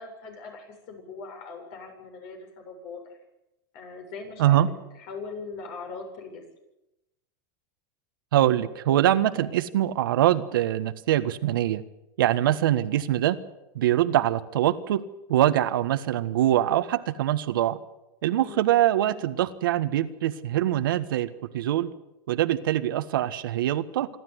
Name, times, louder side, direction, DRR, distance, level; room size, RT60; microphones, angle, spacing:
voice 1, 0.0-3.0 3.7-4.6 5.0-6.4 12.4-12.6 18.4-18.6, left 4 dB, 55° left, 4 dB, 7.8 m, -40 dB
voice 2, 8.3-11.8 12.2-13.4 13.7-15.0 15.3-17.8 18.2-21.9 22.3-24.1, right 12 dB, 80° right, 11 dB, 1.5 m, -23 dB
27.0 x 12.5 x 9.6 m, 0.92 s
supercardioid pair, 120°, 11 cm